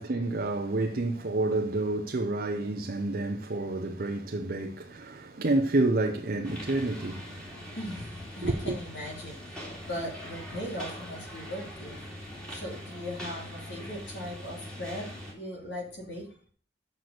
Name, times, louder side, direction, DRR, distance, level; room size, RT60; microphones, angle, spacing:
voice 1, 0.0-7.8 8.4-8.7, right 2 dB, 55° right, 0.7 m, -29 dB
sound 1, 6.4-15.3, equal, 5° left, 2.4 m, -42 dB
voice 2, 7.7-12.0 12.5-16.3, left 1 dB, 75° left, 3.1 m, -39 dB
6.5 x 6.1 x 6.5 m
head